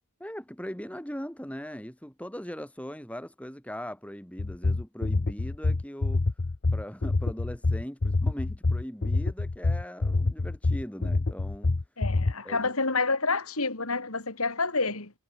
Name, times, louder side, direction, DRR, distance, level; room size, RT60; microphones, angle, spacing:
voice 1, 0.2-6.2 6.7-11.8 12.4-12.7, equal, 5° left, 3.8 m, -40 dB
sound 1, 4.4-12.3, left 2 dB, 45° left, 0.7 m, -26 dB
voice 2, 12.0-15.1, left 3 dB, 70° left, 4.1 m, -28 dB
head